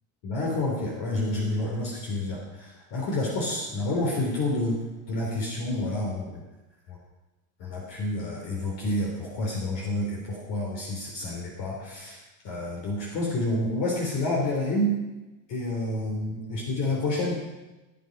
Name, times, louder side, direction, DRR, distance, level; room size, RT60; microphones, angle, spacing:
voice 1, 0.2-6.4 6.9-7.0 7.6-12.2 12.4-14.9 15.5-17.4, left 1 dB, 65° left, -2 dB, 3.5 m, -29 dB
16.0 x 8.1 x 5.2 m, 1.1 s
supercardioid pair, 120°, 35 cm